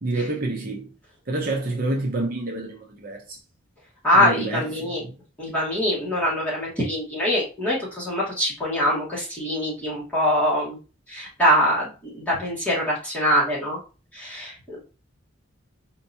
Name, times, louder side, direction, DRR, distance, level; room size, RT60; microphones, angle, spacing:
voice 1, 0.0-0.9 1.3-3.4 4.1-5.2, right 2 dB, 45° right, 0.7 m, -28 dB
voice 2, 4.0-5.0 5.4-10.8 11.1-13.8 14.1-14.9, equal, 5° left, 2.0 m, -23 dB
4.5 x 2.9 x 2.7 m
head